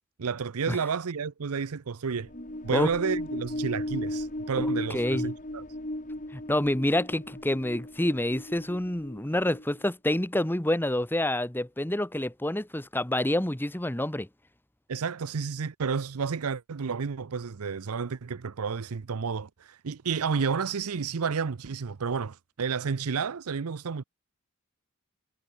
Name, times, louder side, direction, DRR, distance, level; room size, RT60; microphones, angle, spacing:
voice 1, 0.2-2.3 2.6-5.6 14.9-24.0, right 5 dB, 80° right, 0.6 m, -31 dB
sound 1, 2.1-9.8, left 1 dB, 35° left, 2.9 m, -35 dB
voice 2, 4.6-5.3 6.3-14.3, left 1 dB, 10° left, 1.0 m, -28 dB
head